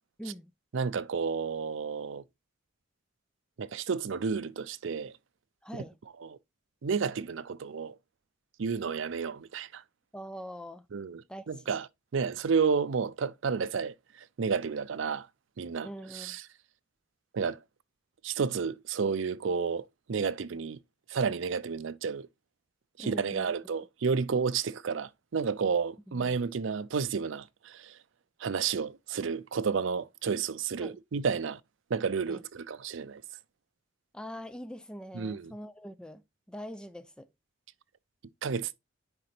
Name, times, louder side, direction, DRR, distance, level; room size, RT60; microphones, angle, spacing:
voice 1, 0.2-0.5 5.6-6.0 10.1-10.9 11.3-11.8 15.8-16.4 23.0-23.6 26.1-26.3 30.8-31.0 32.3-32.4 34.1-37.3, equal, 5° left, 0.3 m, -43 dB
voice 2, 0.7-2.2 3.6-5.1 5.7-5.9 6.3-6.4 6.8-8.0 8.6-9.8 10.9-11.2 11.5-11.9 12.1-13.9 14.4-15.3 15.6-15.9 16.1-16.4 17.3-17.6 18.2-20.8 21.1-22.3 23.0-27.9 28.4-31.6 31.9-33.2 35.1-35.5 38.4-38.7, right 5 dB, 70° right, 0.5 m, -31 dB
9.8 x 3.9 x 3.2 m
head